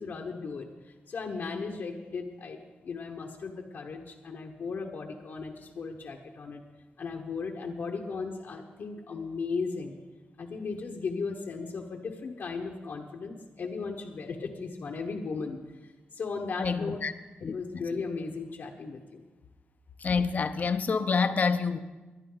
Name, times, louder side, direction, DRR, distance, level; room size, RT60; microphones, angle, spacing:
voice 1, 0.0-6.6 7.0-10.0 10.4-17.0 17.5-19.2, left 4 dB, 65° left, 1 dB, 1.1 m, -36 dB
voice 2, 16.6-17.1 17.4-17.8 20.0-21.8, left 5 dB, 45° left, 11 dB, 0.7 m, -28 dB
20.0 x 11.0 x 3.9 m, 1.2 s
wide cardioid pair, 130°, 4 cm